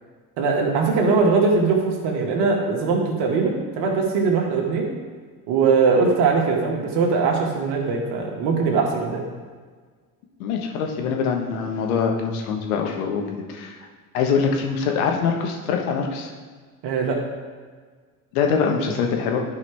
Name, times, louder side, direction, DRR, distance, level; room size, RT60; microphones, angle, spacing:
voice 1, 0.4-4.9 5.5-9.2 16.8-17.2, right 4 dB, 60° right, 0 dB, 1.9 m, -21 dB
voice 2, 10.4-13.8 14.1-16.3 18.3-19.4, left 6 dB, 70° left, 2 dB, 1.4 m, -24 dB
11.5 x 4.9 x 3.4 m, 1.5 s
hypercardioid pair, 70°, 45 cm